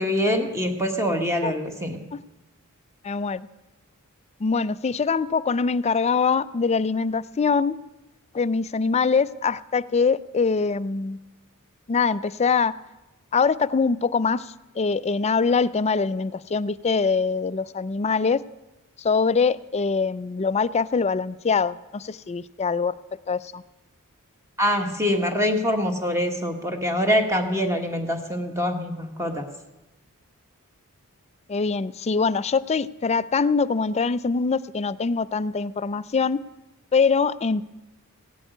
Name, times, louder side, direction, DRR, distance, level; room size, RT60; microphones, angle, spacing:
voice 1, 0.0-2.0 24.6-29.4, equal, 15° right, 4 dB, 1.4 m, -24 dB
voice 2, 3.0-3.5 4.4-7.8 8.3-11.2 11.9-12.7 13.3-18.4 19.0-22.9 23.3-23.6 31.5-36.4 36.9-37.6, left 5 dB, 30° left, 16 dB, 0.4 m, -23 dB
16.0 x 8.1 x 9.2 m, 1.0 s
head